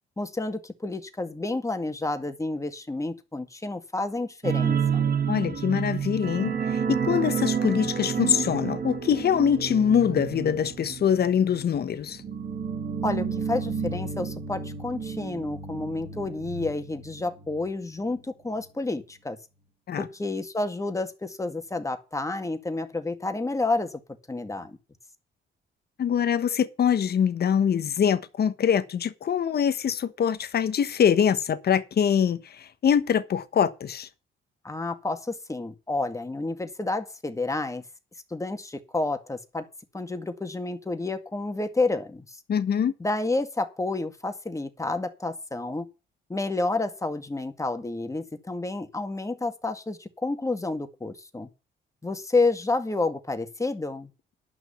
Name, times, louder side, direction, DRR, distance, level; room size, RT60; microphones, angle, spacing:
voice 1, 0.2-5.1 13.0-19.4 20.0-24.0 24.3-24.8 34.6-37.8 38.3-39.7 39.9-42.4 43.0-45.9 46.3-51.5 52.0-54.1, left 2 dB, 15° left, 2.0 m, -30 dB
sound 1, 4.4-17.7 18.0-18.2 18.6-18.7, right 6 dB, 50° right, 2.4 m, -30 dB
voice 2, 5.3-12.2 19.9-20.0 26.0-34.1 42.5-42.9, left 8 dB, 55° left, 1.2 m, -24 dB
11.0 x 6.2 x 7.1 m
cardioid pair, 90°, 20 cm